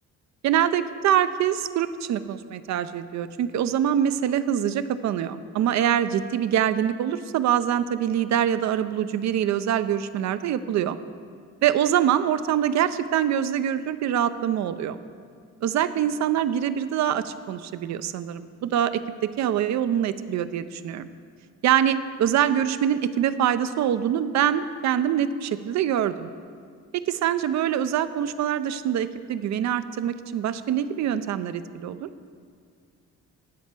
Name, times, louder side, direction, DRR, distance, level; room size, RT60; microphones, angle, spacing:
voice 1, 0.4-11.0 11.6-15.0 15.6-21.1 21.6-26.3 26.9-32.1, right 10 dB, 65° right, 13 dB, 0.5 m, -24 dB
10.5 x 4.4 x 7.5 m, 2.2 s
cardioid pair, 90°, 30 cm